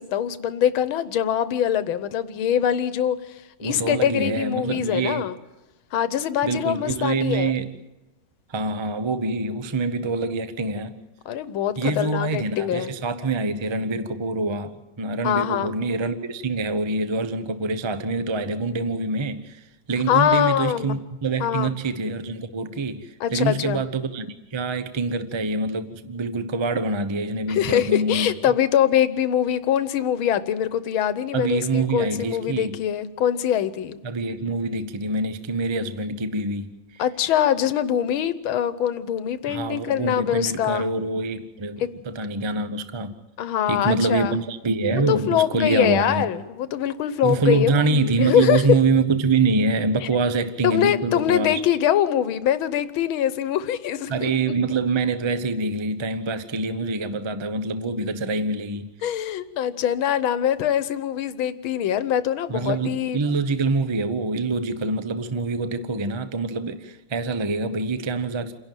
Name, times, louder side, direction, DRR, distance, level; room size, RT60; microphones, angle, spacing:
voice 1, 0.0-3.2 3.6-5.3 5.9-7.5 11.3-12.9 15.2-15.7 20.1-21.0 21.4-21.7 23.2-23.8 27.5-34.0 37.0-40.9 41.8-41.9 43.4-44.4 44.9-48.6 50.6-54.3 59.0-63.2, left 10 dB, 80° left, 1.7 m, -23 dB
voice 2, 3.6-5.3 6.4-7.7 8.5-11.0 11.8-24.3 24.5-28.3 31.3-32.8 34.0-36.7 36.9-37.0 39.5-43.2 43.7-46.3 47.2-51.6 54.1-58.9 62.5-68.5, right 3 dB, 30° right, 0.5 m, -25 dB
28.0 x 11.5 x 9.1 m
omnidirectional pair, 2.2 m